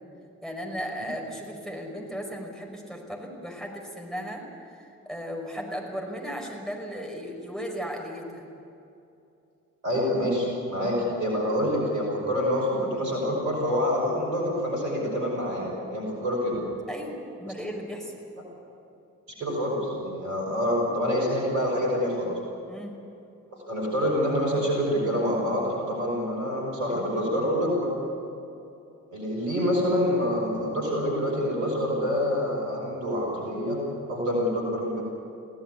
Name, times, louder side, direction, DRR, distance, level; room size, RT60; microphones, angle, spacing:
voice 1, 0.4-4.4 4.7-8.5 16.9-18.1 22.7-23.0, equal, ahead, 0 dB, 5.5 m, -36 dB
voice 2, 9.8-16.6 19.4-22.4 23.7-27.9 29.1-33.8 34.1-35.0, equal, 75° right, -2 dB, 5.7 m, -26 dB
21.5 x 17.0 x 8.4 m, 2.7 s
figure-of-eight pair, 40°, 39 cm